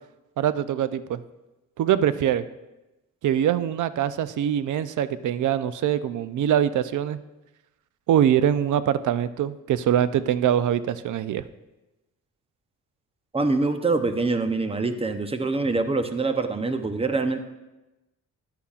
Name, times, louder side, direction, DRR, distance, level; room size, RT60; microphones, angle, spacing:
voice 1, 0.4-1.2 1.8-2.4 3.2-7.2 8.1-11.4, right 10 dB, 65° right, 14 dB, 0.5 m, -23 dB
voice 2, 13.3-17.4, right 3 dB, 15° right, 8 dB, 0.6 m, -25 dB
14.0 x 10.0 x 2.4 m, 1.0 s
cardioid pair, 130°, 33 cm